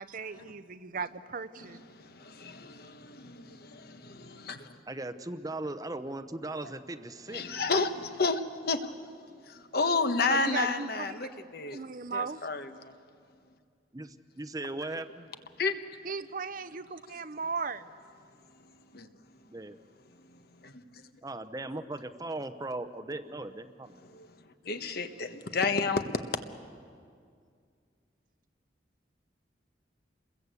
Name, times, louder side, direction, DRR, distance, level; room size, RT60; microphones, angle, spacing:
voice 1, 0.0-1.8 10.3-10.9 11.7-12.5 16.0-17.9, right 5 dB, 50° right, 13 dB, 0.8 m, -36 dB
voice 2, 1.6-4.8 7.3-8.9 9.5-11.9 12.1-12.9 15.6-15.7 18.9-19.1 20.3-21.0 24.0-24.3 24.6-26.0, left 4 dB, 55° left, 8 dB, 1.3 m, -32 dB
voice 3, 4.9-7.5 13.9-15.3 19.5-19.8 21.2-24.0, right 2 dB, 20° right, 11 dB, 0.8 m, -38 dB
28.5 x 21.5 x 8.2 m, 2.2 s
head